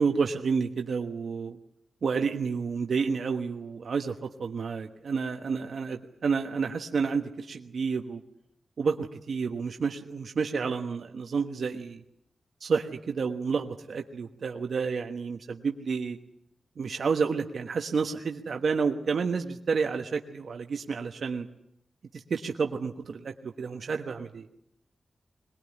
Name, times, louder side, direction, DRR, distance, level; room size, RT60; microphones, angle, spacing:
voice 1, 0.0-1.6 2.0-8.2 8.8-12.0 12.6-16.2 16.8-21.5 22.1-24.5, right 5 dB, 65° right, 4 dB, 1.3 m, -30 dB
22.5 x 20.0 x 9.9 m, 0.77 s
wide cardioid pair, 115°, 0 cm